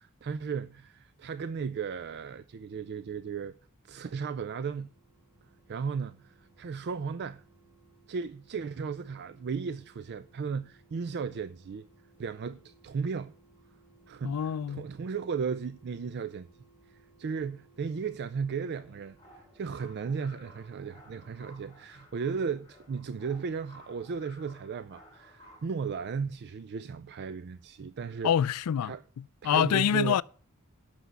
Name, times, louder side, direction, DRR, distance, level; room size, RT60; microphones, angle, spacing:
voice 1, 0.0-3.5 3.8-4.9 5.7-7.4 8.1-11.9 12.2-13.3 14.1-16.5 16.9-19.2 19.5-28.3 28.8-29.0 29.4-30.2, right 5 dB, 50° right, 0.4 m, -35 dB
sound 1, 4.1-22.3 22.6-22.7, right 3 dB, 15° right, 2.3 m, -64 dB
voice 2, 14.2-14.8 28.2-30.2, left 9 dB, 85° left, 0.4 m, -27 dB
sound 2, 18.7-25.7, left 1 dB, 20° left, 5.3 m, -56 dB
8.0 x 6.2 x 8.1 m
head